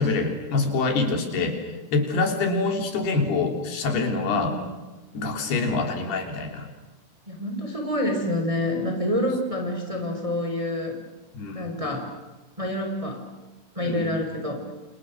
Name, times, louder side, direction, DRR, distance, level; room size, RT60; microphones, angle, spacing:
voice 1, 0.0-1.6 1.9-4.7 5.1-6.7 11.3-11.7 13.9-14.2, left 3 dB, 75° left, 4 dB, 5.5 m, -25 dB
voice 2, 1.1-1.4 4.1-4.7 7.3-11.0 11.5-12.0 12.6-13.2 13.7-14.6, left 1 dB, 10° right, 3 dB, 4.6 m, -28 dB
29.5 x 29.0 x 6.4 m, 1.2 s
omnidirectional pair, 4.6 m